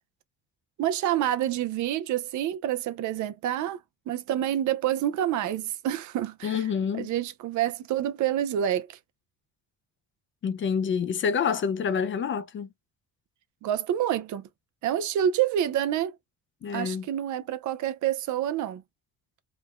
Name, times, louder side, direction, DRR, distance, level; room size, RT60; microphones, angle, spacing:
voice 1, 0.8-3.8 4.1-6.6 6.9-9.0 13.6-14.5 14.8-16.1 16.7-18.8, right 11 dB, 75° right, 0.6 m, -27 dB
voice 2, 6.4-7.1 10.4-12.7 16.6-17.1, left 6 dB, 40° left, 0.4 m, -27 dB
3.1 x 2.2 x 2.3 m
cardioid pair, 90°, 30 cm